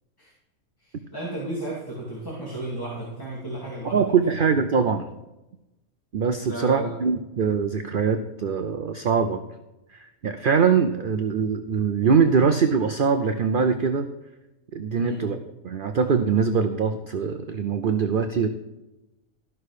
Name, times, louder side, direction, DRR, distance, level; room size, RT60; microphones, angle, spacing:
voice 1, 0.8-4.3 6.4-7.0 15.0-15.2, right 1 dB, 15° left, -5 dB, 2.5 m, -34 dB
voice 2, 3.8-5.1 6.1-9.4 9.9-14.1 14.7-15.4 15.6-18.5, right 6 dB, 55° right, 7 dB, 0.6 m, -22 dB
13.5 x 6.2 x 4.9 m, 0.99 s
omnidirectional pair, 1.5 m